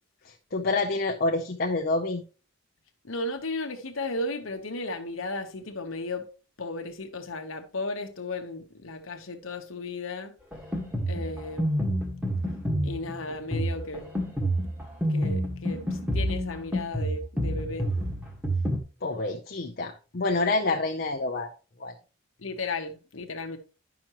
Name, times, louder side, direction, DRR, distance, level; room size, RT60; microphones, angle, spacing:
voice 1, 0.5-2.2 19.0-21.5 21.8-21.9, left 2 dB, 45° left, 0.7 m, -27 dB
voice 2, 3.0-6.3 6.6-10.3 11.1-11.9 12.8-14.1 15.1-15.8 16.1-17.9 22.4-23.6, left 2 dB, 70° left, 1.1 m, -35 dB
Drum kit, 10.5-18.8, equal, 5° right, 1.6 m, -29 dB
10.5 x 5.9 x 3.0 m
head